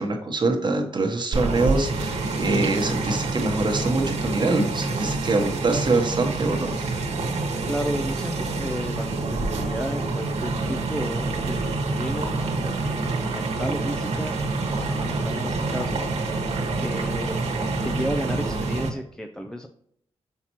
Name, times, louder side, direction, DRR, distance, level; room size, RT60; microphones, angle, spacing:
voice 1, 0.0-6.8, right 3 dB, 45° right, 3 dB, 1.1 m, -24 dB
sound 1, 1.3-18.9, right 3 dB, 80° right, 1.2 m, -27 dB
voice 2, 7.7-14.4 14.8-17.4 17.8-19.7, equal, 5° left, 3 dB, 0.5 m, -33 dB
5.8 x 5.5 x 3.0 m, 0.68 s
cardioid pair, 80°, 11 cm